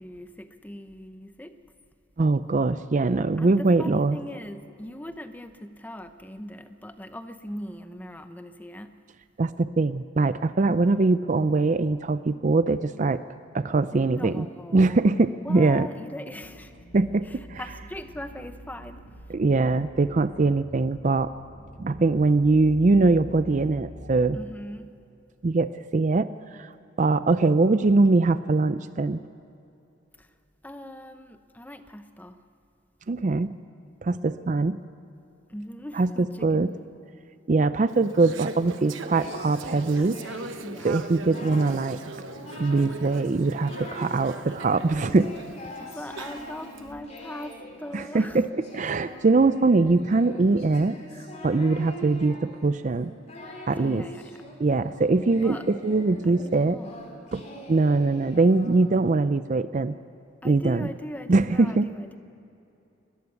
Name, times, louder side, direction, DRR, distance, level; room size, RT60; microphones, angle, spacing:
voice 1, 0.0-1.6 3.4-9.0 13.9-15.0 15.4-16.7 17.2-19.3 24.3-24.9 30.2-30.3 30.6-32.4 35.5-36.8 40.6-41.1 45.8-48.4 53.8-54.5 55.3-55.7 56.2-57.0 60.4-62.2, left 1 dB, 10° left, 9 dB, 0.8 m, -40 dB
voice 2, 2.2-4.2 9.4-13.2 13.5-14.5 14.7-15.9 16.9-17.6 19.3-21.3 21.8-24.4 25.4-26.7 27.0-29.2 33.1-33.5 34.0-34.8 36.0-36.7 37.5-40.2 40.8-42.0 42.6-45.3 47.9-48.5 48.7-51.0 51.4-53.1 53.7-54.1 54.6-56.8 57.3-60.0 60.4-60.9 61.3-61.9, right 3 dB, 40° right, 13 dB, 0.4 m, -22 dB
sound 1, 16.4-24.4, equal, 65° left, 2.0 m, -46 dB
Conversation / Chatter, 37.9-46.8, right 3 dB, 75° right, 1.0 m, -40 dB
Singing, 39.1-40.6 41.0-41.8 42.1-43.0 43.3-44.2 44.6-59.1, left 1 dB, 35° left, 3.7 m, -43 dB
21.0 x 14.5 x 9.6 m, 2.8 s
head